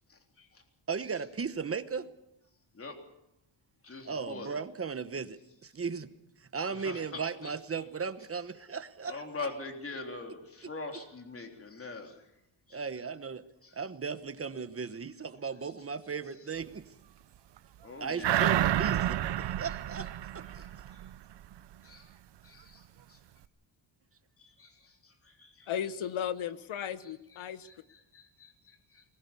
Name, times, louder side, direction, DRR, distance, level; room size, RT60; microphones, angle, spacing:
voice 1, 0.1-0.6 2.7-2.9 3.8-4.6 6.7-7.5 9.0-12.3 12.7-12.8 13.6-13.8 15.6-15.7 17.8-18.4 20.5-21.0 21.8-22.1 22.4-23.2 24.4-25.7 27.0-27.1 27.4-29.0, left 3 dB, 30° left, 4 dB, 3.5 m, -44 dB
voice 2, 0.9-2.1 4.0-6.1 6.4-9.2 12.7-13.4 13.7-16.9 18.0-20.1 20.3-20.6, right 5 dB, 30° right, 12 dB, 1.1 m, -36 dB
sound 1, 18.2-21.1 21.5-21.6, right 12 dB, 60° right, 0.8 m, -29 dB
voice 3, 25.7-27.7, left 9 dB, 85° left, 13 dB, 1.4 m, -35 dB
23.5 x 20.5 x 7.0 m, 0.83 s
cardioid pair, 130°, 47 cm